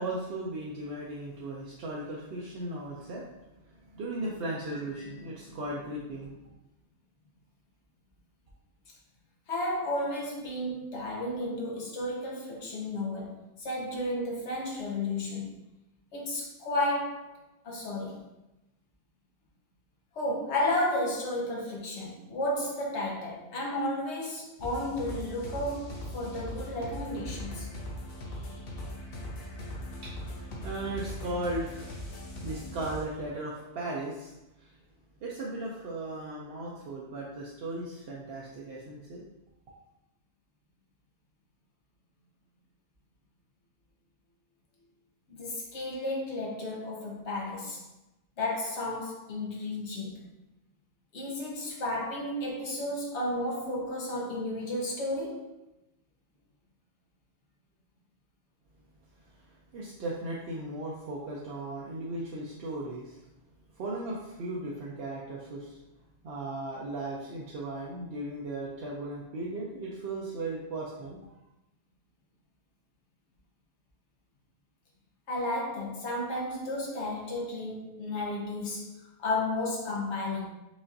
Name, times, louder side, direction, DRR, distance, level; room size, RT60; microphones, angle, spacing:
voice 1, 0.0-3.3 3.6-6.5 29.3-29.4 30.0-34.7 35.2-39.2 59.2-63.2 63.7-65.8 66.2-71.2, right 2 dB, 65° right, -4 dB, 0.8 m, -37 dB
voice 2, 9.5-15.5 16.1-17.3 17.6-18.3 20.1-27.7 45.3-47.8 48.4-50.3 51.1-55.5 75.3-80.5, left 1 dB, 80° left, -3 dB, 1.2 m, -33 dB
sound 1, 24.6-33.1, left 1 dB, 60° left, 0.9 m, -40 dB
4.9 x 2.4 x 2.6 m, 0.96 s
omnidirectional pair, 1.2 m